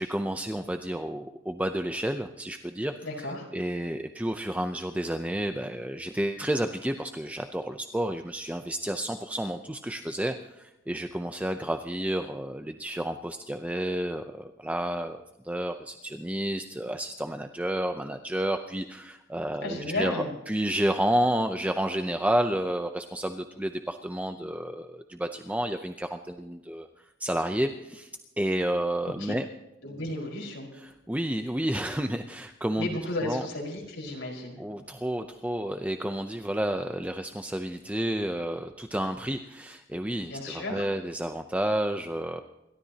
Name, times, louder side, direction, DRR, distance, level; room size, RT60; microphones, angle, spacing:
voice 1, 0.0-2.9 3.5-15.2 15.4-28.1 28.4-29.4 30.7-33.0 33.2-33.4 34.6-42.4, right 1 dB, 5° right, 6 dB, 0.6 m, -30 dB
voice 2, 3.0-3.5 19.6-20.3 29.0-29.3 29.8-30.7 32.8-34.6 40.3-40.9, left 1 dB, 80° left, -2 dB, 4.9 m, -34 dB
28.5 x 13.0 x 2.9 m, 0.98 s
head